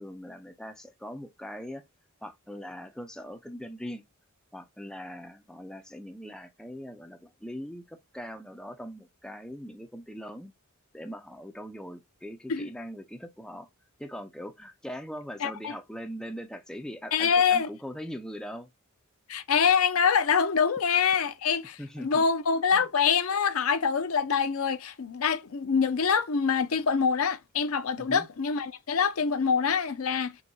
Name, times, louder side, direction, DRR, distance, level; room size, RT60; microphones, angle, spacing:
voice 1, 0.0-1.8 2.2-4.0 4.5-10.5 10.9-13.7 14.0-18.7 21.8-22.2 22.7-22.9 28.0-28.3, equal, 5° left, 0.4 m, -41 dB
voice 2, 15.4-15.7 17.1-17.7 19.3-30.4, left 6 dB, 70° left, 0.6 m, -25 dB
4.0 x 3.5 x 2.3 m
head